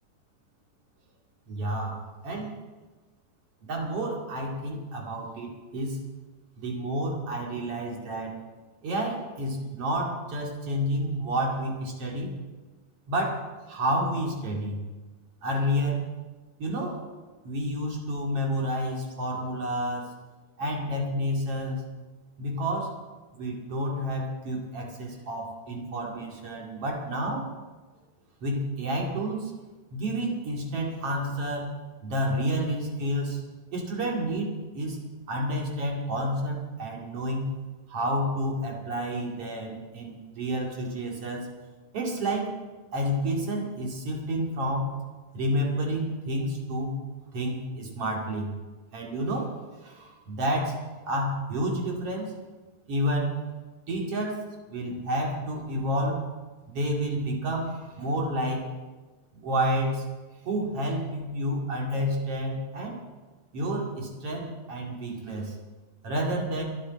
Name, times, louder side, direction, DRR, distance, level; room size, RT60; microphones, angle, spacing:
voice 1, 1.5-2.5 3.7-6.0 6.6-8.4 8.8-12.3 13.1-14.8 15.4-16.1 16.6-17.0 17.4-20.1 20.6-21.8 22.4-22.9 23.3-27.5 28.4-29.5 29.9-31.7 32.0-33.4 33.7-35.0 35.3-37.5 37.9-41.5 41.9-42.5 42.9-45.0 45.3-47.0 47.3-48.5 48.9-49.5 49.8-50.8 51.0-52.3 52.9-53.3 53.9-54.4 54.7-56.2 56.7-58.6 59.3-60.0 60.4-63.0 63.5-65.5 66.0-66.6, equal, 50° right, -1 dB, 3.2 m, -30 dB
23.5 x 9.7 x 4.3 m, 1.3 s
omnidirectional pair, 3.6 m